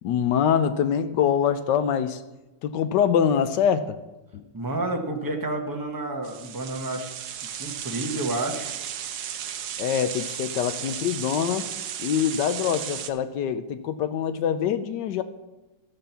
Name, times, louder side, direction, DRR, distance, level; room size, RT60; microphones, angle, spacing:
voice 1, 0.0-2.2 2.6-4.0 4.3-4.4 9.8-11.7 12.0-15.2, left 8 dB, 70° left, 11 dB, 1.0 m, -24 dB
voice 2, 4.5-7.1 7.6-8.8, right 2 dB, 25° right, 2 dB, 0.4 m, -30 dB
sound 1, 6.2-13.1, right 9 dB, 65° right, 1.0 m, -34 dB
13.5 x 5.9 x 6.8 m, 1.1 s
omnidirectional pair, 2.4 m